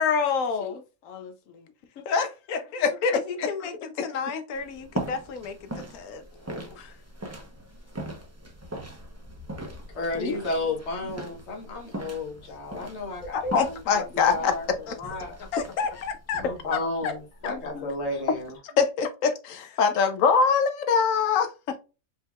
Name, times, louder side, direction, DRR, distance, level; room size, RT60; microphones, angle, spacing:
voice 1, 0.0-1.3 2.0-3.5 6.8-6.9 10.2-10.4 13.3-14.5 14.9-15.0 17.7-17.9 18.8-19.3 19.8-21.8, left 5 dB, 70° left, 1.0 m, -24 dB
voice 2, 3.1-6.3 15.5-17.1 19.6-19.7, left 5 dB, 90° left, 1.2 m, -33 dB
sound 1, 4.5-18.6, right 1 dB, 15° right, 0.6 m, -40 dB
voice 3, 9.9-15.4 16.4-17.1 17.4-18.6, left 2 dB, 50° left, 1.5 m, -33 dB
5.1 x 3.5 x 2.3 m
omnidirectional pair, 1.5 m